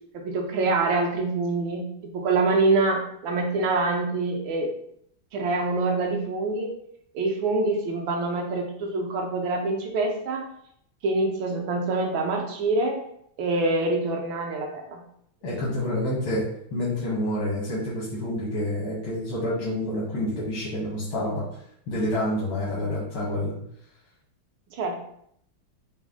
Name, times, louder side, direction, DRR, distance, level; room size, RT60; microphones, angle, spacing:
voice 1, 0.1-4.7 5.3-6.7 7.1-10.5 11.0-13.0 13.4-15.0 24.7-25.0, right 3 dB, 80° right, 2 dB, 1.5 m, -25 dB
voice 2, 15.4-21.4 21.9-23.5, left 1 dB, 80° left, -8 dB, 2.0 m, -28 dB
5.2 x 2.0 x 3.6 m, 0.70 s
omnidirectional pair, 2.2 m